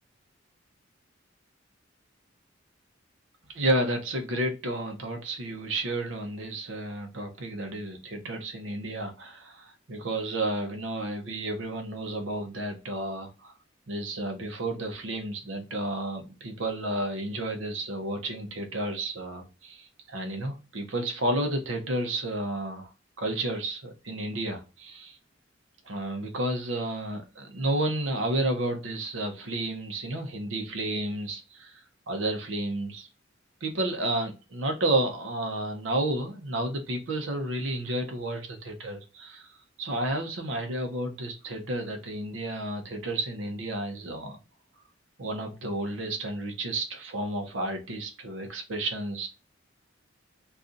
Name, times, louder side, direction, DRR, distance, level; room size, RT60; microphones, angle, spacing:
voice 1, 3.5-13.5 13.9-22.9 23.2-25.2 25.9-31.8 32.1-33.1 33.6-39.5 39.8-44.4 45.2-49.3, right 1 dB, 75° right, 0.7 m, -31 dB
2.6 x 2.4 x 3.7 m
head